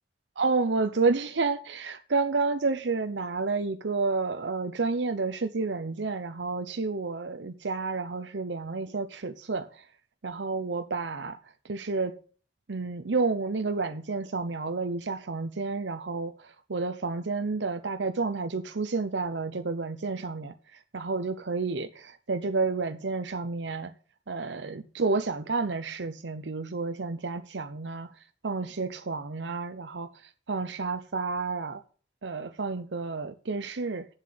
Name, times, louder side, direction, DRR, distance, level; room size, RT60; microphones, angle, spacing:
voice 1, 0.4-9.9 10.2-11.4 11.6-12.2 12.7-23.9 24.3-28.1 28.4-31.8 32.2-34.1, right 4 dB, 85° right, 0.8 m, -30 dB
8.1 x 7.5 x 8.6 m
head